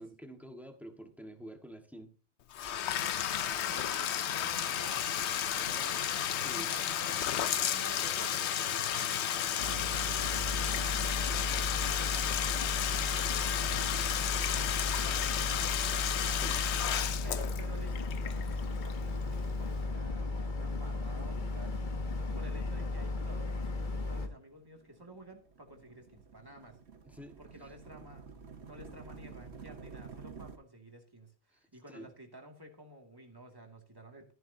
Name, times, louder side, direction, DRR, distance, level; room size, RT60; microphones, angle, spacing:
voice 1, 0.0-2.1 6.3-6.7 16.3-16.6 27.0-27.7 31.5-31.6 31.9-32.1, right 1 dB, ahead, 5 dB, 1.5 m, -48 dB
Bathtub (filling or washing), 2.5-19.2, left 10 dB, 70° left, 1.0 m, -33 dB
voice 2, 2.9-10.2 10.5-14.3 14.8-16.1 17.2-21.8 22.3-26.8 27.4-28.3 28.7-34.3, right 1 dB, 20° right, 2 dB, 2.3 m, -52 dB
Boat Water vehicle, 9.6-24.3, left 3 dB, 45° left, 1.2 m, -35 dB
sound 1, 24.3-30.6, right 5 dB, 65° right, 1.5 m, -50 dB
14.0 x 10.5 x 2.8 m, 0.38 s
omnidirectional pair, 1.2 m